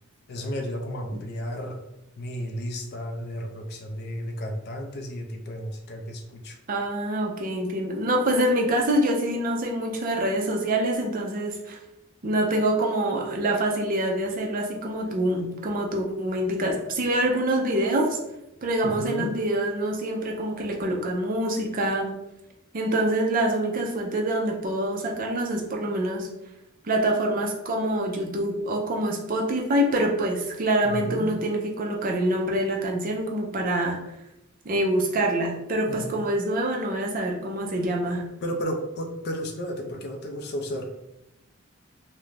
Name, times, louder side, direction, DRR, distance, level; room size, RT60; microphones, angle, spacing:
voice 1, 0.3-1.8 2.2-6.6 18.8-19.3 30.8-31.3 35.9-36.3 38.4-41.1, equal, 50° left, 3 dB, 0.4 m, -33 dB
voice 2, 6.7-11.8 12.2-18.2 18.6-22.2 22.7-26.3 26.8-34.0 34.6-38.2, right 1 dB, 40° right, 1 dB, 0.5 m, -25 dB
2.4 x 2.1 x 3.1 m, 0.87 s
head